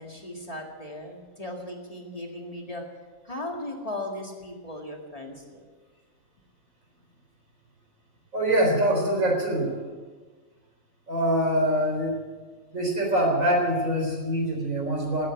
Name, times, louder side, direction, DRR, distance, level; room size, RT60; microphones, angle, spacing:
voice 1, 0.0-2.8 3.2-5.6, left 1 dB, 25° left, 1 dB, 2.1 m, -37 dB
voice 2, 8.3-9.7 11.1-12.1 12.7-15.3, right 1 dB, 75° right, 0 dB, 4.5 m, -24 dB
18.0 x 8.4 x 8.7 m, 1.4 s
omnidirectional pair, 1.4 m